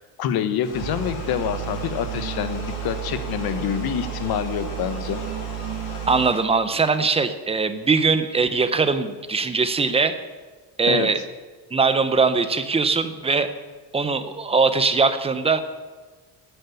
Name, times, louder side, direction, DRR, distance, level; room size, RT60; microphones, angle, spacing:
voice 1, 0.0-5.2 10.9-11.1, left 9 dB, 65° left, 11 dB, 1.3 m, -26 dB
sound 1, 0.6-6.5, left 2 dB, 50° left, 6.3 m, -38 dB
sound 2, 0.7-6.3, right 11 dB, 85° right, 1.7 m, -32 dB
voice 2, 6.1-10.2 10.8-11.2 11.7-13.5 13.9-15.6, right 4 dB, 15° right, 10 dB, 0.8 m, -21 dB
14.0 x 9.4 x 8.4 m, 1.4 s
cardioid pair, 175°, 40 cm